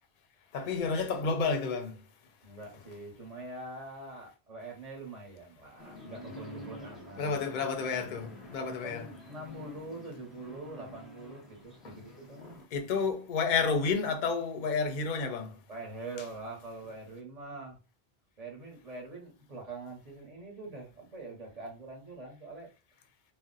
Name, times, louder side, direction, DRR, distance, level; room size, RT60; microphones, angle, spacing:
voice 1, 0.5-1.9 7.2-9.1 11.8-11.9 12.7-15.5, left 5 dB, 55° left, 0.6 m, -30 dB
voice 2, 2.4-7.4 8.8-12.6 15.7-17.8 18.4-22.7, right 2 dB, 40° right, 0.9 m, -44 dB
sound 1, 5.8-12.7, equal, ahead, 0.6 m, -49 dB
2.5 x 2.0 x 3.8 m
omnidirectional pair, 1.1 m